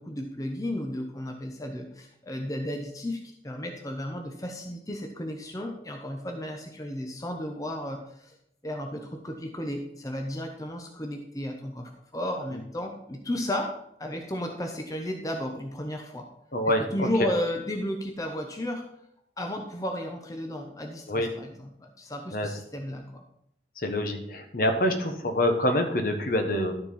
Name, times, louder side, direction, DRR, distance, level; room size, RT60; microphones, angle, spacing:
voice 1, 0.0-8.3 8.6-13.7 14.0-16.2 16.8-18.8 19.4-23.2, left 1 dB, 20° left, 3 dB, 0.8 m, -33 dB
voice 2, 16.5-17.1 21.1-21.3 22.3-22.5 23.8-26.7, left 1 dB, 55° left, 5 dB, 1.2 m, -26 dB
12.5 x 4.4 x 5.6 m, 0.74 s
head